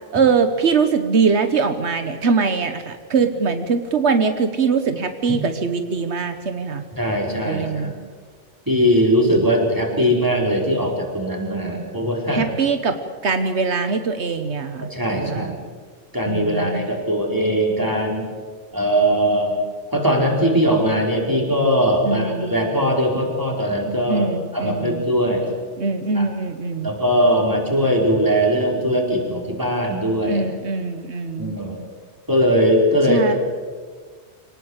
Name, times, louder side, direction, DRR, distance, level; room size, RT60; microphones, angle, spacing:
voice 1, 0.1-6.8 7.4-7.9 12.3-13.0 13.2-15.5 16.3-16.9 22.0-22.6 24.1-25.0 25.8-26.9 30.3-31.5 33.1-33.3, right 5 dB, 80° right, 8 dB, 1.5 m, -22 dB
voice 2, 6.9-7.9 8.7-12.4 14.9-15.6 16.1-18.3 18.7-19.6 19.9-24.3 24.5-25.5 26.1-26.3 26.8-30.4 31.4-31.8 32.3-33.3, equal, 20° right, 0 dB, 4.8 m, -20 dB
24.5 x 19.0 x 8.1 m, 1.5 s
omnidirectional pair, 1.1 m